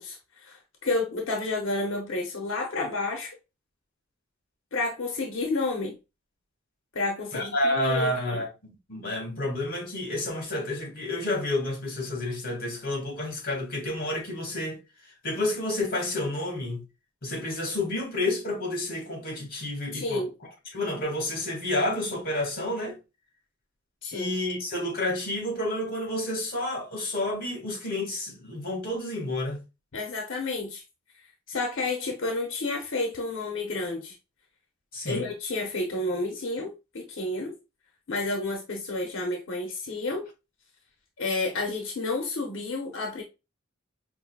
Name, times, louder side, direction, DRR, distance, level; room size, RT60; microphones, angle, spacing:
voice 1, 0.0-3.3 4.7-6.0 6.9-8.4 19.9-20.3 24.0-24.3 29.9-30.8 31.5-34.1 35.1-37.5 38.1-40.3 41.2-43.2, left 2 dB, 90° left, 0.8 m, -30 dB
voice 2, 7.3-14.8 15.2-16.8 17.2-20.3 20.7-23.0 24.1-29.6 34.9-35.3, left 1 dB, 50° left, 1.8 m, -30 dB
5.3 x 2.6 x 2.3 m
head